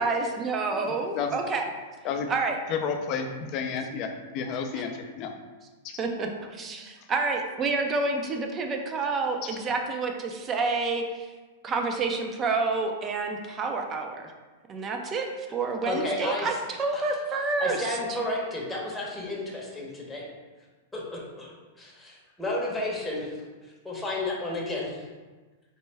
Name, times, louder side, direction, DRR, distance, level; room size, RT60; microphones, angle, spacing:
voice 1, 0.0-1.7 2.3-2.6 4.7-4.8 6.0-11.3 11.6-14.3 14.7-18.2, right 3 dB, 25° right, 3 dB, 0.5 m, -29 dB
voice 2, 0.7-1.3 2.0-2.3 2.7-5.3 5.8-6.0, left 6 dB, 40° left, 5 dB, 0.4 m, -31 dB
voice 3, 15.8-16.6 16.9-17.0 17.6-20.2 20.9-21.5 21.8-23.3 23.8-25.0, left 2 dB, 5° left, -5 dB, 0.8 m, -32 dB
4.3 x 2.1 x 3.3 m, 1.3 s
hypercardioid pair, 130°, 0 cm